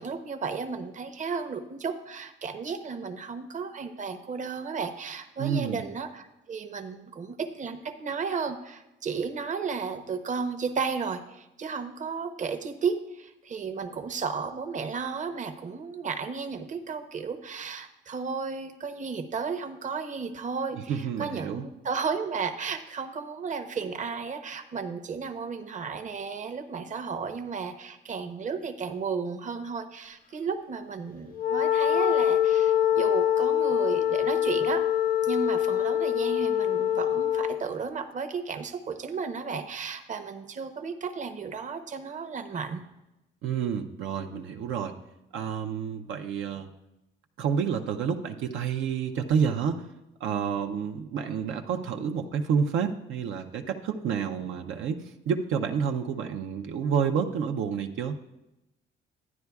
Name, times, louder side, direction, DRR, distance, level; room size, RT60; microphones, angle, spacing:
voice 1, 0.0-34.9 35.2-42.8, right 5 dB, 40° right, 8 dB, 0.8 m, -33 dB
voice 2, 5.4-5.8 20.7-21.6 43.4-45.0 45.3-46.7 47.4-49.9 50.2-58.2, right 7 dB, 80° right, 4 dB, 0.6 m, -29 dB
Wind instrument woodwind instrument, 31.3-37.6, left 10 dB, 45° left, 0.4 m, -24 dB
12.0 x 9.5 x 2.3 m, 0.94 s
cardioid pair, 90°, 20 cm